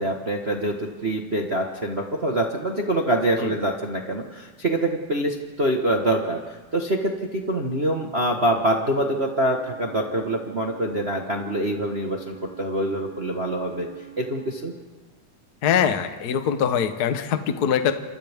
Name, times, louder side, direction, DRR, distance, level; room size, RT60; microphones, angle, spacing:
voice 1, 0.0-13.9 14.2-14.7, right 1 dB, 45° right, 1 dB, 0.8 m, -25 dB
Wind instrument woodwind instrument, 8.8-14.8, right 7 dB, 80° right, 9.8 m, -45 dB
voice 2, 15.6-17.9, left 8 dB, 75° left, 8 dB, 0.8 m, -22 dB
29.0 x 27.0 x 3.6 m, 1.3 s
omnidirectional pair, 3.6 m